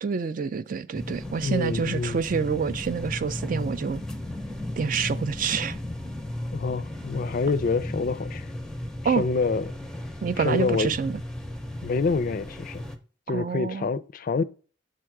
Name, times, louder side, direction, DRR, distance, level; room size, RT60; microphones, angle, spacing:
voice 1, 0.0-4.0 4.8-5.8 9.0-9.3 10.2-11.2 13.3-13.9, right 6 dB, 45° right, 0.4 m, -27 dB
sound 1, 0.9-13.0, left 1 dB, 5° left, 0.6 m, -35 dB
voice 2, 1.4-2.2 6.5-8.5 9.0-9.8 10.4-10.9 11.8-12.8 13.3-14.4, left 4 dB, 50° left, 0.4 m, -27 dB
6.7 x 3.7 x 4.5 m
head